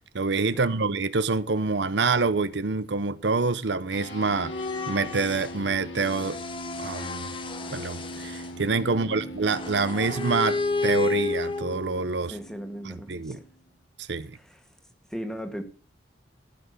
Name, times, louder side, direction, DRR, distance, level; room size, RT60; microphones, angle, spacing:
voice 1, 0.1-4.5 4.9-6.4 6.8-7.3 7.7-12.4 12.8-13.4 14.0-14.4, right 4 dB, 70° right, 0.8 m, -26 dB
sound 1, 3.9-13.6, equal, 80° left, 3.6 m, -41 dB
sound 2, 4.4-5.6 6.0-8.5 9.4-12.1, left 3 dB, 30° left, 1.1 m, -31 dB
voice 2, 8.9-9.3 12.3-13.4 14.3-14.7 15.1-15.6, equal, 5° left, 1.6 m, -38 dB
15.0 x 5.9 x 6.5 m
head